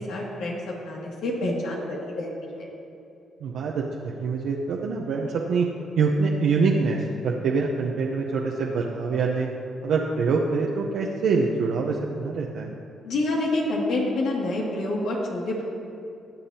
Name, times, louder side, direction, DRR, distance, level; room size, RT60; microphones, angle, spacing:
voice 1, 0.0-2.7 13.0-15.6, left 2 dB, 80° left, -3 dB, 2.3 m, -28 dB
voice 2, 3.4-5.7 6.0-9.5 9.8-12.7, right 4 dB, 75° right, -2 dB, 0.8 m, -25 dB
21.5 x 7.3 x 2.9 m, 2.7 s
cardioid pair, 90°, 0 cm